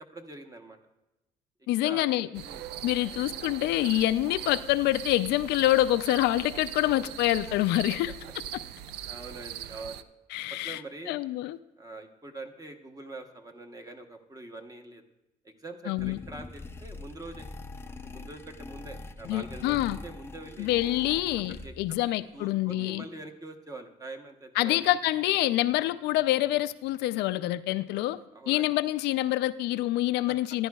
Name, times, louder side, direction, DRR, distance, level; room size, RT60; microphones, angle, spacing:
voice 1, 0.1-0.8 1.6-2.1 2.4-2.7 7.5-7.6 9.1-10.1 10.5-11.2 11.8-15.0 15.4-17.5 17.8-20.7 21.5-22.0 22.3-24.9 25.8-25.9 28.3-28.7 30.3-30.4, right 2 dB, 20° right, 5 dB, 1.0 m, -44 dB
voice 2, 1.7-2.3 2.8-8.1 10.3-10.8 11.1-11.6 15.9-16.2 19.3-20.0 20.6-23.0 24.6-28.2 28.5-30.7, left 15 dB, 80° left, 14 dB, 0.4 m, -26 dB
sound 1, 2.3-10.0, right 11 dB, 75° right, 0.4 m, -40 dB
sound 2, 16.0-22.0, left 3 dB, 15° left, 0.5 m, -43 dB
14.5 x 10.5 x 2.3 m, 0.99 s
cardioid pair, 110°, 17 cm